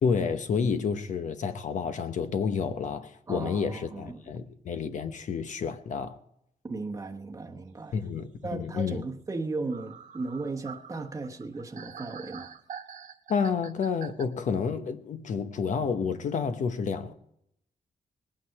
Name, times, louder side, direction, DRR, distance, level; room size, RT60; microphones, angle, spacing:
voice 1, 0.0-6.2 7.9-9.0 13.3-17.1, left 6 dB, 60° left, 0.9 m, -30 dB
voice 2, 3.3-4.2 6.6-8.0 8.4-12.5, right 3 dB, 20° right, 1.1 m, -36 dB
sound 1, 9.3-9.4 9.7-14.2, right 7 dB, 65° right, 1.3 m, -45 dB
20.5 x 9.3 x 4.7 m
wide cardioid pair, 135°, 14 cm